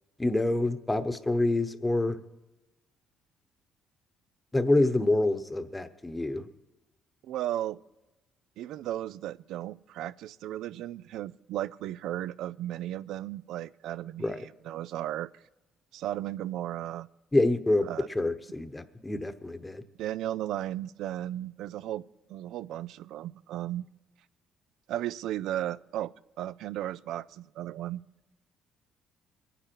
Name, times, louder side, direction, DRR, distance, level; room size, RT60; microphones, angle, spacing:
voice 1, 0.2-2.2 4.5-6.5 14.2-14.4 17.3-19.8, left 2 dB, 15° left, 10 dB, 1.0 m, -27 dB
voice 2, 7.2-7.8 8.6-15.3 15.9-17.1 17.8-18.1 20.0-22.0 22.3-23.9 24.9-26.1 26.4-28.0, right 13 dB, 75° right, 19 dB, 0.4 m, -35 dB
22.5 x 9.9 x 4.6 m, 1.1 s
cardioid pair, 100°, 0 cm